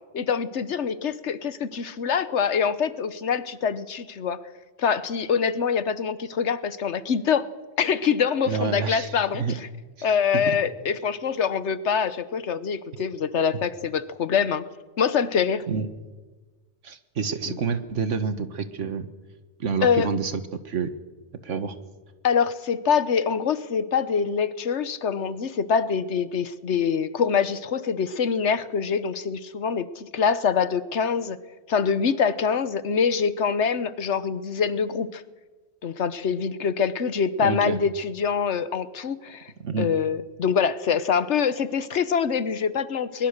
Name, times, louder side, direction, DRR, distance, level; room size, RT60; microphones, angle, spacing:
voice 1, 0.1-4.4 4.8-7.5 7.8-9.4 10.0-14.6 15.0-15.6 17.5-17.6 19.8-20.1 22.2-31.4 31.7-35.2 35.8-39.5 39.8-43.3, left 6 dB, 75° left, 14 dB, 1.3 m, -25 dB
voice 2, 8.5-9.5 10.0-10.1 10.3-10.6 13.0-13.1 15.7-15.9 16.8-19.1 19.6-20.9 21.4-21.8 37.4-37.8 39.6-39.9, right 5 dB, 90° right, 11 dB, 1.7 m, -28 dB
22.5 x 21.0 x 6.6 m, 1.3 s
omnidirectional pair, 1.2 m